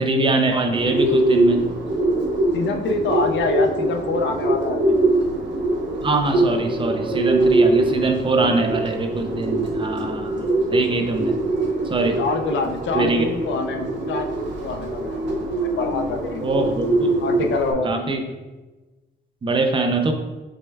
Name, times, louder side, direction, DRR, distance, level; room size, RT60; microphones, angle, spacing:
voice 1, 0.0-1.7 6.0-10.3 10.7-11.4 11.9-12.2 12.9-13.3 16.4-17.2 17.8-18.2 19.4-20.1, right 3 dB, 25° right, 5 dB, 0.4 m, -23 dB
Bird, 0.7-17.7, right 2 dB, 80° right, 0.7 m, -23 dB
voice 2, 2.5-5.1 12.2-16.4 17.2-18.2, left 3 dB, 80° left, 5 dB, 0.5 m, -26 dB
6.0 x 2.2 x 3.3 m, 1.2 s
wide cardioid pair, 155°, 19 cm